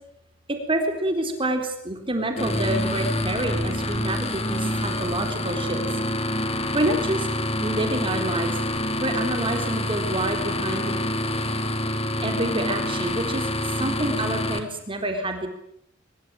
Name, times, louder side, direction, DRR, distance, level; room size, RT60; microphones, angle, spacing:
voice 1, 0.5-5.8 6.7-7.3 7.6-8.5 9.0-10.9 12.2-15.5, right 1 dB, 25° right, 5 dB, 3.9 m, -27 dB
sound 1, 2.4-14.6, left 1 dB, 30° left, 3.0 m, -27 dB
24.0 x 22.0 x 9.0 m, 0.74 s
head